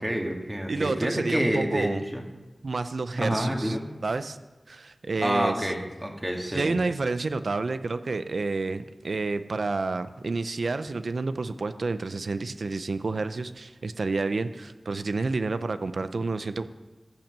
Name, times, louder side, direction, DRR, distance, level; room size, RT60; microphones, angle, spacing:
voice 1, 0.0-2.2 3.2-3.8 5.2-6.7, equal, 10° right, 1 dB, 2.0 m, -28 dB
voice 2, 0.7-2.0 2.6-3.8 4.0-4.4 4.7-5.7 6.5-16.6, right 3 dB, 80° right, 11 dB, 0.6 m, -29 dB
14.0 x 6.0 x 7.4 m, 1.1 s
wide cardioid pair, 60°, 0 cm